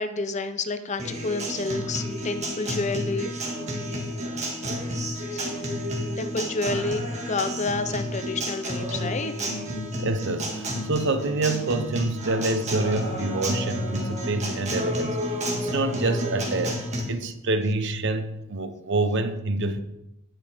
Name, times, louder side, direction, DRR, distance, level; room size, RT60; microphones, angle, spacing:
voice 1, 0.0-3.3 4.9-5.4 6.2-9.3, left 3 dB, 35° left, 10 dB, 0.6 m, -29 dB
Acoustic guitar, 1.0-17.0, equal, 30° right, 1.9 m, -30 dB
voice 2, 10.0-16.8 17.1-19.8, right 2 dB, 55° right, 10 dB, 0.8 m, -27 dB
18.0 x 6.1 x 3.5 m, 0.88 s
head